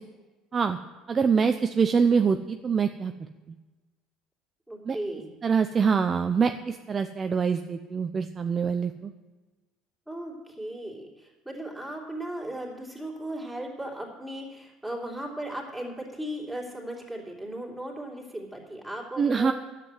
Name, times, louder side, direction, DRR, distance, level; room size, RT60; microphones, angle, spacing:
voice 1, 1.1-3.1 4.9-5.0 5.4-9.1 19.2-19.5, right 6 dB, 30° right, 7 dB, 0.5 m, -24 dB
voice 2, 4.7-5.4 10.1-19.5, right 1 dB, ahead, -3 dB, 3.0 m, -37 dB
11.0 x 7.6 x 7.9 m, 1.2 s
cardioid pair, 120°, 0 cm